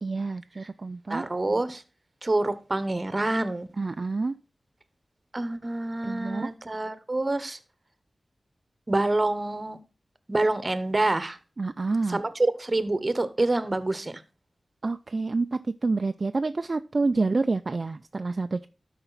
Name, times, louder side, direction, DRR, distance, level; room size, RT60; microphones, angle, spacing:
voice 1, 0.0-1.2 3.8-4.4 6.0-6.5 11.6-12.2 14.8-18.7, right 3 dB, 50° right, 9 dB, 0.4 m, -28 dB
voice 2, 1.1-1.8 2.2-3.7 5.3-7.6 8.9-9.8 10.3-11.4 12.1-14.1, right 2 dB, 35° right, 13 dB, 1.0 m, -26 dB
12.5 x 5.0 x 4.0 m, 0.33 s
wide cardioid pair, 65°, 0 cm